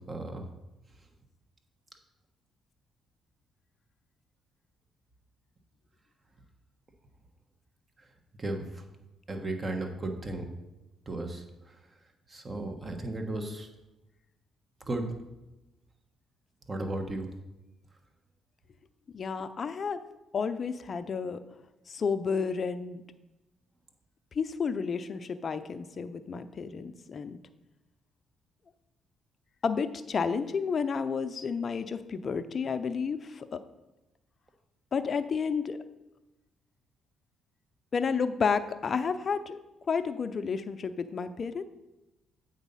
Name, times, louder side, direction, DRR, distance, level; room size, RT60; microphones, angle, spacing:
voice 1, 0.1-0.5 8.4-8.8 9.3-10.5 11.1-11.8 12.3-13.7 14.9-15.1 16.7-17.3, right 2 dB, 30° right, 5 dB, 1.2 m, -35 dB
voice 2, 19.1-20.0 20.3-21.4 21.9-23.0 24.3-27.4 29.6-33.6 34.9-35.8 37.9-39.6 39.9-41.6, left 5 dB, 45° left, 11 dB, 0.5 m, -31 dB
8.1 x 4.0 x 5.5 m, 1.0 s
supercardioid pair, 70°, 0 cm